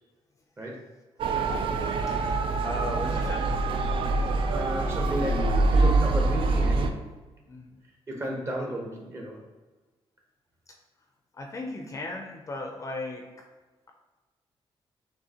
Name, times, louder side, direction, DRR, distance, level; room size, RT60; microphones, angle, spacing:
Motor vehicle (road) / Siren, 1.2-6.9, right 3 dB, 60° right, 0.4 m, -25 dB
voice 1, 2.0-3.4 7.5-7.8 10.7-10.8 11.3-13.3, left 2 dB, 30° left, 2 dB, 0.4 m, -37 dB
voice 2, 4.5-7.0 8.1-9.4, equal, 25° right, 0 dB, 0.9 m, -33 dB
6.3 x 2.6 x 2.8 m, 1.2 s
wide cardioid pair, 140°, 10 cm